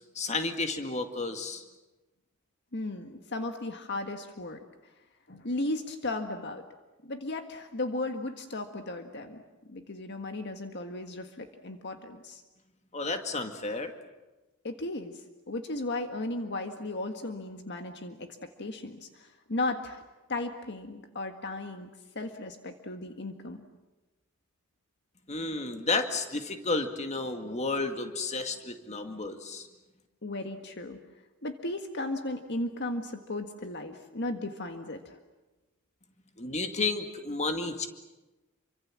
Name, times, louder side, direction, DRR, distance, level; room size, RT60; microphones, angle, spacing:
voice 1, 0.2-1.6 12.9-13.9 25.3-29.7 36.4-37.9, left 3 dB, 35° left, 6 dB, 2.1 m, -32 dB
voice 2, 2.7-4.6 5.3-6.6 7.0-9.4 9.7-12.4 14.6-15.2 15.5-20.0 20.3-21.9 22.1-23.6 30.2-31.0 31.4-35.2, left 2 dB, 55° left, 6 dB, 1.7 m, -35 dB
28.0 x 25.0 x 7.5 m, 1.1 s
head